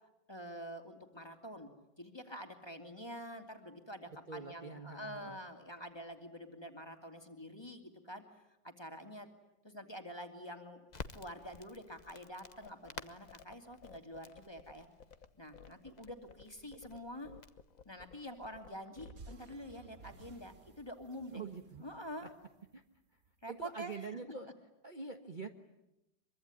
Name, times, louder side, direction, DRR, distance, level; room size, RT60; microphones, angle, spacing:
voice 1, 0.3-1.7 2.0-8.2 8.6-9.3 9.6-10.9 11.1-14.9 15.4-17.3 17.8-21.4 21.8-22.3 23.4-24.2, equal, 15° left, 4 dB, 2.7 m, -47 dB
voice 2, 4.3-5.4 21.3-21.9 22.2-22.3 22.7-22.8 23.5-24.5 24.8-25.5, right 4 dB, 30° right, 4 dB, 1.4 m, -45 dB
Crackle, 10.9-18.8, left 4 dB, 30° left, 0.9 m, -53 dB
sound 1, 12.4-19.7, left 6 dB, 50° left, 1.4 m, -55 dB
sound 2, 19.0-23.4, right 4 dB, 50° right, 2.1 m, -57 dB
24.5 x 24.0 x 9.9 m, 0.92 s
omnidirectional pair, 2.0 m